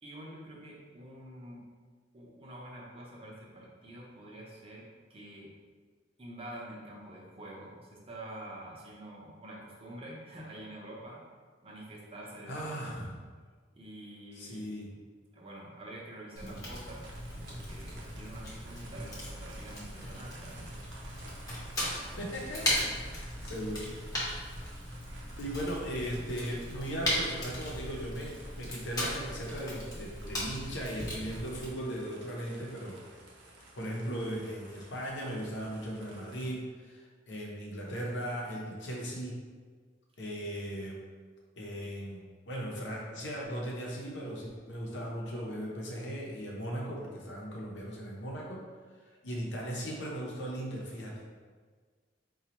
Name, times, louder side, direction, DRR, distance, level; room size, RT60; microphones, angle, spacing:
voice 1, 0.0-1.6 2.1-5.5 6.2-11.2 11.6-13.1 13.8-14.7 15.3-17.0 17.5-20.7, right 1 dB, 35° right, -4 dB, 0.7 m, -47 dB
voice 2, 12.5-13.2 14.3-14.9 22.2-23.9 24.5-24.7 25.4-33.0 33.8-39.4 40.2-41.0 41.6-48.6 49.2-51.1, equal, 85° left, -3 dB, 0.7 m, -38 dB
Fire, 16.4-31.7, left 1 dB, 20° left, 0.8 m, -37 dB
sound 1, 16.7-36.5, right 2 dB, 85° right, 0.6 m, -53 dB
4.1 x 2.3 x 2.9 m, 1.5 s
head